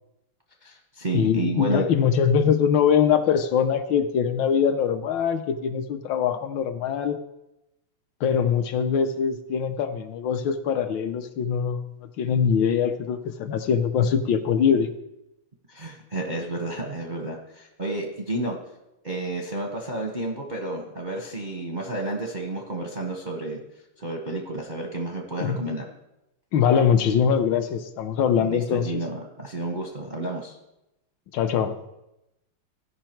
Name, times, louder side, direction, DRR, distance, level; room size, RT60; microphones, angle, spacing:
voice 1, 0.6-1.9 15.7-18.6 19.0-23.6 24.0-25.8 28.4-30.6, right 2 dB, 50° right, 1 dB, 0.5 m, -31 dB
voice 2, 1.1-7.2 8.2-11.8 12.2-14.9 25.4-25.6 26.5-28.9 31.3-31.8, left 7 dB, 70° left, 8 dB, 1.2 m, -22 dB
14.5 x 5.6 x 4.4 m, 0.90 s
omnidirectional pair, 2.4 m